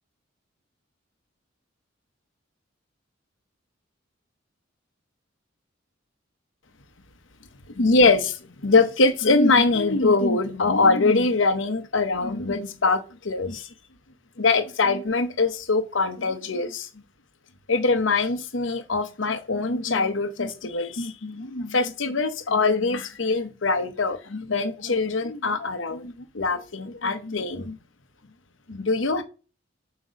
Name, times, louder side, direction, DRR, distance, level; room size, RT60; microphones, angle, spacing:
voice 1, 7.8-13.7 14.4-16.9 17.7-27.8 28.7-29.2, left 3 dB, 75° left, 1.0 m, -23 dB
7.9 x 3.1 x 6.3 m
head